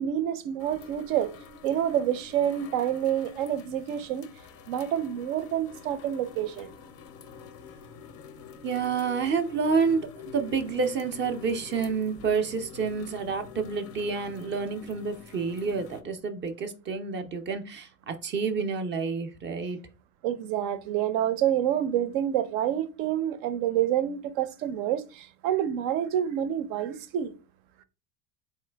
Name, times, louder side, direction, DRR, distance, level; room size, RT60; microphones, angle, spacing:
voice 1, 0.0-1.3 1.6-4.3 4.7-6.7 20.2-27.3, right 10 dB, 70° right, 0.7 m, -28 dB
sound 1, 0.6-16.0, left 6 dB, 35° left, 0.4 m, -47 dB
voice 2, 8.6-19.8, right 5 dB, 25° right, 0.4 m, -29 dB
3.9 x 3.0 x 3.3 m
supercardioid pair, 135°, 45 cm